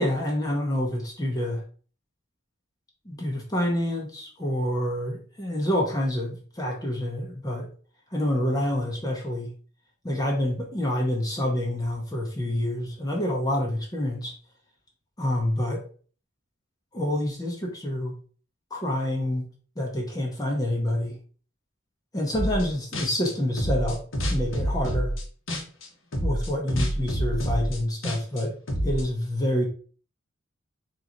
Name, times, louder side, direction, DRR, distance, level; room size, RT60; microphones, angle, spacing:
voice 1, 0.0-1.6 3.0-7.7 8.1-9.5 10.0-14.3 15.2-15.8 16.9-18.1 18.7-19.5 19.8-21.2 22.1-25.1 26.2-28.5 28.8-29.6, left 1 dB, 20° left, -1 dB, 0.8 m, -27 dB
sound 1, 22.3-22.7 22.9-25.9 26.1-29.0, equal, 90° left, 1.2 m, -27 dB
3.7 x 3.0 x 3.9 m, 0.41 s
head